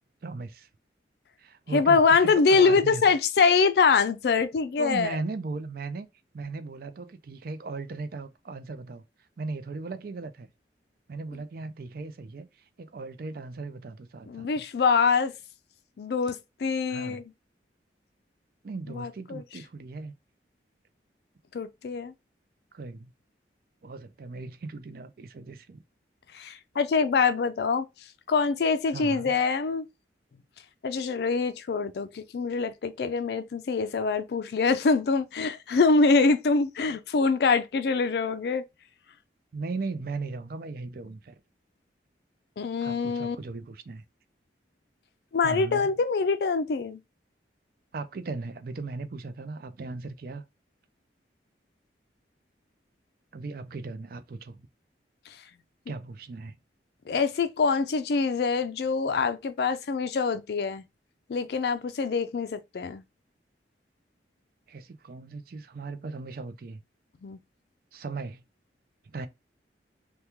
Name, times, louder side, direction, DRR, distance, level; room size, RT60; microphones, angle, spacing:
voice 1, 0.2-0.7 1.4-3.0 4.8-6.1 6.3-9.0 9.4-10.5 11.1-12.5 12.8-14.6 16.9-17.2 18.6-20.1 22.7-23.1 23.8-25.8 28.9-29.3 39.5-41.4 42.8-44.0 45.4-45.9 47.9-50.4 53.3-54.7 55.9-56.6 64.7-66.8 67.9-68.4 69.1-69.3, right 3 dB, 55° right, 0.4 m, -37 dB
voice 2, 1.7-5.2 14.3-15.3 16.0-17.2 18.9-19.4 21.5-22.1 26.3-27.9 28.3-29.8 30.8-38.6 42.6-43.4 45.3-47.0 57.1-60.8 61.3-63.0 67.2-67.4, left 4 dB, 60° left, 0.4 m, -24 dB
2.9 x 2.2 x 3.4 m
head